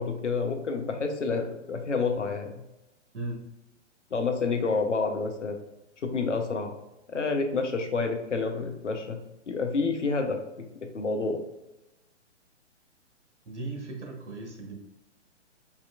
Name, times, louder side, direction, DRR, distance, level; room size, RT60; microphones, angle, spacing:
voice 1, 0.0-2.5 4.1-5.6 6.0-6.7 7.1-9.2 9.5-10.4 10.9-11.4, left 4 dB, 75° left, 4 dB, 0.9 m, -28 dB
voice 2, 13.4-14.8, right 2 dB, 70° right, 0 dB, 1.3 m, -37 dB
5.7 x 2.9 x 2.4 m, 0.92 s
figure-of-eight pair, 120°, 36 cm